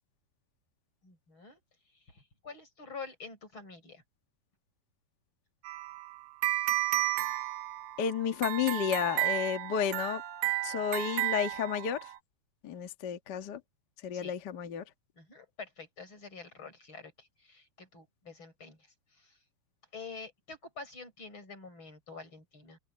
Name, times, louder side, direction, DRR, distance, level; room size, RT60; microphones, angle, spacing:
voice 1, 1.0-1.6 1.9-4.0 14.1-14.3 15.1-19.4 19.9-22.8, left 4 dB, 30° left, 7.3 m, -47 dB
sound 1, 5.7-12.2, right 16 dB, 85° right, 3.4 m, -33 dB
voice 2, 8.0-10.2 10.6-12.1 12.6-13.6 14.0-14.8, left 8 dB, 65° left, 1.0 m, -32 dB
open air
omnidirectional pair, 4.6 m